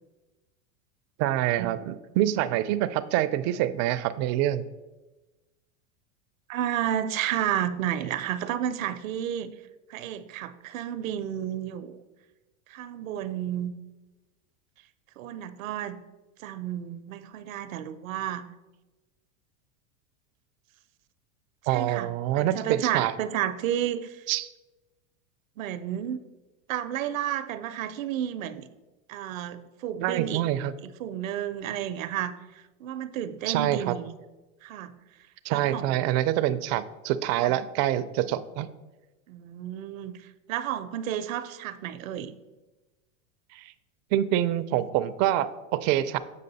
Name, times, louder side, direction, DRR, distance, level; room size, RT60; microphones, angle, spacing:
voice 1, 1.2-4.6 21.7-23.1 24.3-24.5 30.0-30.7 33.5-34.0 35.4-38.7 43.5-43.7 44.1-46.2, right 13 dB, 45° right, 14 dB, 0.4 m, -26 dB
voice 2, 6.5-9.5 9.9-12.0 12.7-13.7 15.2-16.0 16.4-18.5 21.7-22.1 22.3-24.3 25.6-26.3 26.7-28.7 29.1-30.4 30.8-34.2 34.6-35.0 35.5-36.1 37.4-37.6 39.3-42.3, right 10 dB, 85° right, 12 dB, 0.6 m, -32 dB
7.6 x 5.2 x 4.0 m, 1.1 s
supercardioid pair, 120°, 39 cm